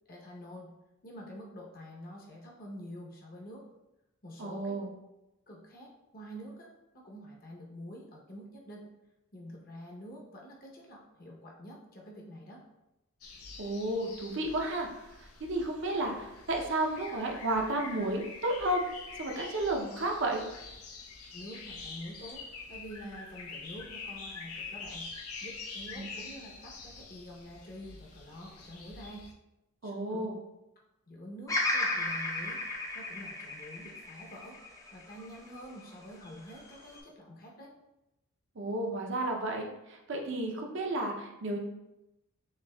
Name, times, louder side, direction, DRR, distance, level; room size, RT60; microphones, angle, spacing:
voice 1, 0.1-0.7 1.0-3.6 4.2-4.8 5.5-6.7 6.9-8.9 9.3-12.6 21.3-22.4 22.7-25.1 25.4-29.3 29.8-30.3 31.1-32.6 32.9-34.6 34.9-37.7, equal, 40° left, -2 dB, 0.8 m, -47 dB
voice 2, 4.4-4.9 13.6-18.9 19.2-20.4 25.8-26.1 29.8-30.4 38.6-41.6, right 1 dB, 55° right, 1 dB, 0.6 m, -32 dB
sound 1, 13.2-29.3, left 4 dB, 85° left, 0.6 m, -46 dB
Bird vocalization bird call bird song, 31.5-35.7 36.3-37.0, left 2 dB, 15° left, 0.5 m, -34 dB
6.6 x 2.7 x 2.3 m, 0.94 s
head